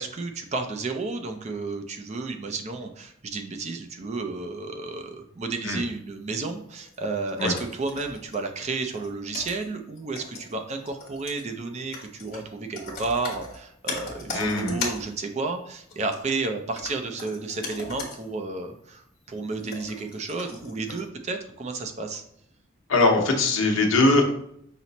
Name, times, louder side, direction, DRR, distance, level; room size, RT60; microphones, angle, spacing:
voice 1, 0.0-22.2, right 3 dB, 35° right, 5 dB, 0.4 m, -32 dB
sound 1, 6.8-8.6 8.9-15.2 15.9-16.3 16.7-18.3 18.6-18.7 19.2-21.1, left 3 dB, 45° left, 1.2 m, -38 dB
voice 2, 14.3-14.8 22.9-24.2, left 2 dB, 75° left, 2 dB, 0.9 m, -21 dB
5.8 x 2.0 x 3.9 m, 0.71 s
head